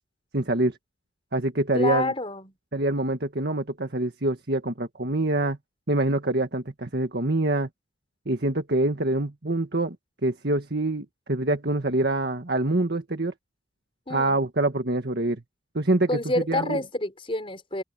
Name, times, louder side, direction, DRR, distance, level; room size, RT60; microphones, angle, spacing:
voice 1, 0.3-0.8 1.3-2.1 2.7-5.6 5.9-7.7 8.3-10.0 10.2-13.3 14.1-15.4 15.7-16.2 16.5-16.8, right 2 dB, 60° right, 1.8 m, -25 dB
voice 2, 1.7-2.5 14.1-14.4 16.1-17.8, left 2 dB, 30° left, 5.0 m, -28 dB
open air
head